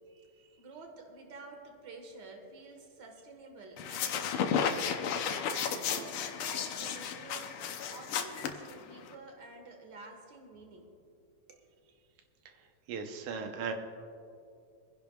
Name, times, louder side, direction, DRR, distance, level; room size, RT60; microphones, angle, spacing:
voice 1, 0.6-4.9 5.5-7.6 7.9-10.9 11.5-11.7, right 3 dB, 45° right, 2 dB, 1.8 m, -49 dB
sound 1, 3.8-9.1, left 7 dB, 80° left, 1.2 m, -33 dB
voice 2, 12.5-13.7, right 5 dB, 85° right, 5 dB, 2.5 m, -38 dB
25.5 x 10.5 x 2.4 m, 2.4 s
omnidirectional pair, 3.4 m